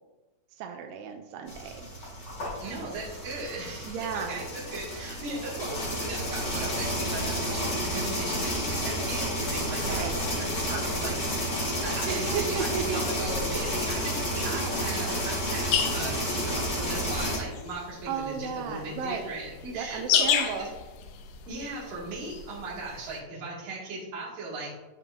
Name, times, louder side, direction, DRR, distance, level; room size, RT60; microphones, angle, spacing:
voice 1, 0.5-1.9 3.8-4.5 9.8-10.2 12.1-13.0 18.1-19.4 19.7-20.7, right 7 dB, 85° right, 4 dB, 2.4 m, -34 dB
sound 1, 1.5-17.4, equal, 30° left, 2.1 m, -31 dB
voice 2, 2.6-11.5 11.8-20.7 21.5-24.7, right 2 dB, 55° right, -6 dB, 3.6 m, -37 dB
sound 2, 15.7-23.2, left 9 dB, 80° left, 2.6 m, -31 dB
13.5 x 5.4 x 2.8 m, 1.1 s
omnidirectional pair, 5.3 m